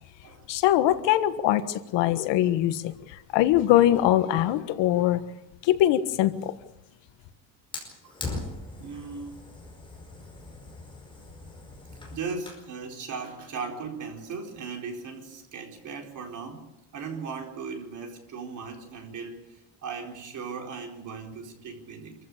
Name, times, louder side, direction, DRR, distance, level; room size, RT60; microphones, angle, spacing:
voice 1, 0.5-5.2 5.6-6.5, left 13 dB, 75° left, 11 dB, 1.6 m, -22 dB
Fire, 7.7-12.7, left 3 dB, 10° left, 5.1 m, -40 dB
voice 2, 8.7-9.3 11.9-16.7 16.9-22.1, right 5 dB, 40° right, 2 dB, 4.5 m, -38 dB
26.5 x 15.0 x 8.7 m, 0.88 s
cardioid pair, 175°, 44 cm